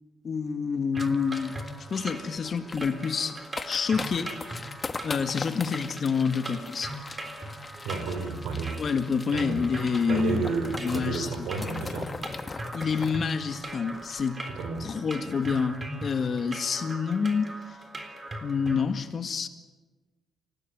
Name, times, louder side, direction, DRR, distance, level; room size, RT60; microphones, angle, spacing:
voice 1, 0.2-1.5 1.9-3.4 3.6-4.3 5.0-7.0 8.8-10.5 10.8-11.3 12.7-14.4 14.8-17.5 18.4-19.5, left 5 dB, 50° left, 2.0 m, -28 dB
sound 1, 0.9-18.8, right 1 dB, 25° right, 3.6 m, -40 dB
sound 2, 1.0-14.8 15.1-15.2 15.4-15.8 16.1-16.3, left 3 dB, 30° left, 1.4 m, -41 dB
voice 2, 7.8-8.8 9.3-12.1 14.5-14.9, right 4 dB, 85° right, 4.7 m, -32 dB
25.5 x 18.0 x 9.4 m
cardioid pair, 90°, 0 cm